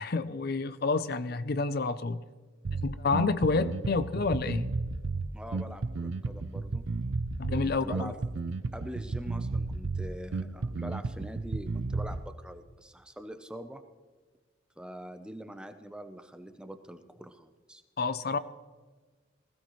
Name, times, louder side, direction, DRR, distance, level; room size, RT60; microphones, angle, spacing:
voice 1, 0.0-2.2 2.7-4.7 7.4-8.1 18.0-18.4, left 4 dB, 50° left, 0.5 m, -29 dB
Bass guitar, 2.6-12.2, right 3 dB, 70° right, 0.6 m, -33 dB
voice 2, 5.3-6.8 7.6-8.2 8.7-13.8 14.8-17.8, equal, 5° right, 0.7 m, -44 dB
20.0 x 15.5 x 3.1 m
head